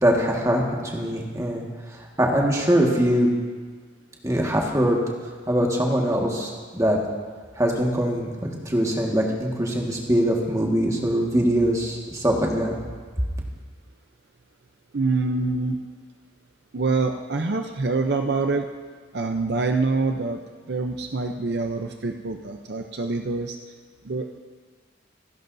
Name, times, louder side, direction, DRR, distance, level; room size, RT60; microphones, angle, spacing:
voice 1, 0.0-1.6 2.2-3.3 4.2-5.0 5.5-7.0 7.6-12.7, equal, 15° right, -1 dB, 1.7 m, -22 dB
voice 2, 14.9-15.8 16.7-18.7 19.1-20.4 20.7-23.6 24.0-24.4, right 3 dB, 60° right, 4 dB, 0.6 m, -25 dB
27.0 x 11.0 x 2.7 m, 1.5 s
head